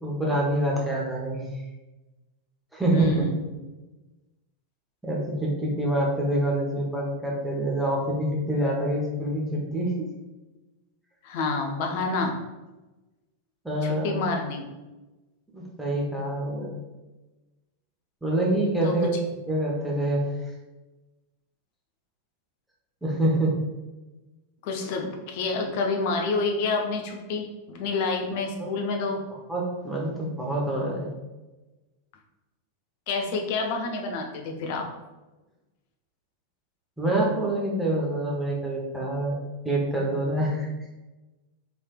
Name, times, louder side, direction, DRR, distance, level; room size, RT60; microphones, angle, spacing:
voice 1, 0.0-1.4 2.7-3.3 5.0-9.9 13.6-14.1 15.5-16.7 18.2-19.2 19.5-20.2 23.0-23.5 29.5-31.1 37.0-39.4 39.6-40.7, right 1 dB, 5° right, -4 dB, 0.8 m, -26 dB
voice 2, 2.9-3.4 11.2-12.4 13.8-14.6 18.8-18.9 24.6-29.2 33.1-34.9, left 3 dB, 50° left, 2 dB, 0.5 m, -28 dB
3.2 x 3.0 x 2.3 m, 1.1 s
figure-of-eight pair, 90°, 0 cm